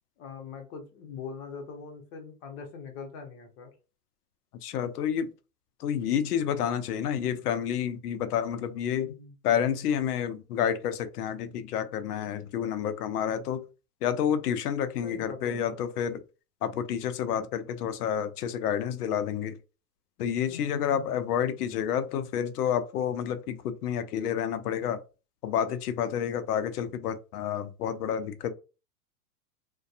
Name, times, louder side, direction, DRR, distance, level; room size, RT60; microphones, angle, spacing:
voice 1, 0.2-3.7 9.0-9.3 15.0-15.8 20.5-21.1, left 5 dB, 45° left, 0.9 m, -42 dB
voice 2, 4.6-5.3 5.8-9.1 9.4-13.7 14.0-16.2 16.6-19.6 20.2-25.0 25.4-28.5, left 9 dB, 70° left, 0.6 m, -29 dB
2.6 x 2.2 x 2.4 m
hypercardioid pair, 125°, 48 cm